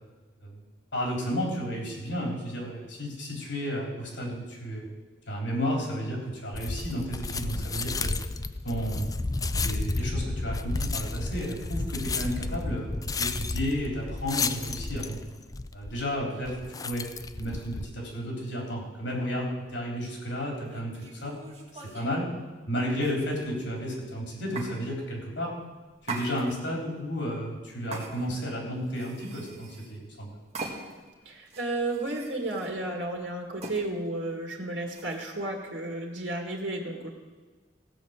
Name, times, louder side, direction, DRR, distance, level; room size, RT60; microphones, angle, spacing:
voice 1, 0.9-4.9 5.3-8.1 8.6-9.1 9.6-15.2 15.7-17.0 17.4-21.3 21.7-22.3 22.7-25.5 26.0-30.4, equal, 80° left, 0 dB, 3.7 m, -32 dB
sound 1, 6.5-17.9, left 3 dB, 20° left, 0.4 m, -32 dB
sound 2, 20.6-22.2 23.0-23.6 24.5-24.7 26.0-26.8 27.9-28.5 28.9-30.0 30.5-31.1 31.5-32.7 33.6-33.8 34.9-35.3, right 3 dB, 35° right, 2.0 m, -41 dB
voice 2, 31.3-37.1, right 2 dB, 80° right, 1 dB, 2.0 m, -33 dB
16.5 x 5.5 x 8.0 m, 1.3 s
head